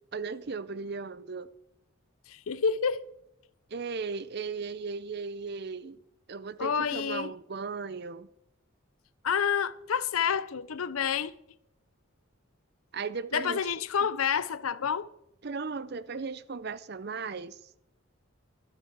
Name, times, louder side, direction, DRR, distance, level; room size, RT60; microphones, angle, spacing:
voice 1, 0.1-1.5 3.7-6.0 6.3-8.3 12.9-13.6 15.4-17.6, right 4 dB, 50° right, 0.6 m, -36 dB
voice 2, 2.3-3.1 6.6-7.3 9.2-11.3 13.3-15.1, left 7 dB, 85° left, 0.6 m, -29 dB
12.5 x 7.8 x 7.3 m
head